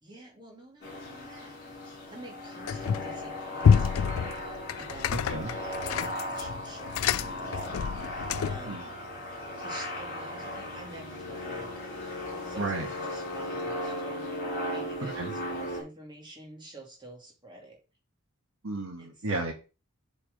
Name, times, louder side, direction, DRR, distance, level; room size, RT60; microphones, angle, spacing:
voice 1, 0.0-1.8 2.1-8.9 9.6-17.8 19.0-19.3, right 2 dB, 20° right, -1 dB, 2.4 m, -49 dB
sound 1, 0.8-15.8, left 1 dB, 45° left, 4.2 m, -37 dB
sound 2, 2.7-3.2 3.6-8.7, left 7 dB, 70° left, 0.4 m, -27 dB
voice 2, 5.1-5.5 8.7-8.8 12.6-12.9 15.2-15.3 18.6-19.5, right 2 dB, 65° right, 4 dB, 1.4 m, -33 dB
7.6 x 4.7 x 5.2 m, 0.32 s
head